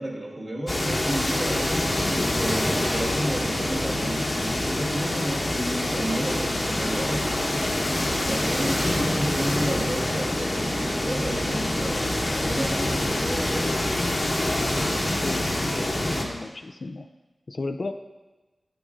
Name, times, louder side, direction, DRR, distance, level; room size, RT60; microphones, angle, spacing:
voice 1, 0.0-7.3 8.0-10.6 10.9-13.8, right 1 dB, 40° right, -3 dB, 1.6 m, -32 dB
sound 1, 0.7-16.2, left 1 dB, 35° left, 0.9 m, -26 dB
sound 2, 6.4-15.3, left 1 dB, 15° left, 0.7 m, -37 dB
voice 2, 15.2-17.1 17.5-17.9, left 3 dB, 50° left, 7 dB, 0.3 m, -34 dB
11.5 x 4.8 x 2.5 m, 1.1 s
wide cardioid pair, 75°, 0 cm